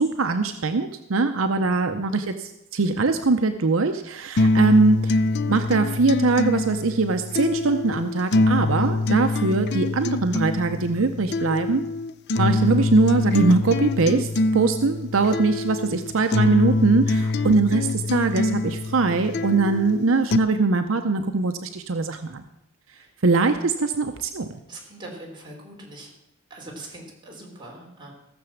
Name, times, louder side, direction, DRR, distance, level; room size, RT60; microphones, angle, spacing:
voice 1, 0.0-5.2 5.5-11.8 12.4-22.4 23.2-24.5, right 3 dB, 70° right, 7 dB, 0.7 m, -22 dB
voice 2, 1.5-1.8 22.9-23.1 24.7-26.1 26.5-28.1, right 1 dB, 20° right, -2 dB, 3.5 m, -42 dB
sound 1, 4.4-20.4, left 2 dB, 55° left, 0.5 m, -25 dB
16.0 x 6.9 x 7.1 m, 0.87 s
head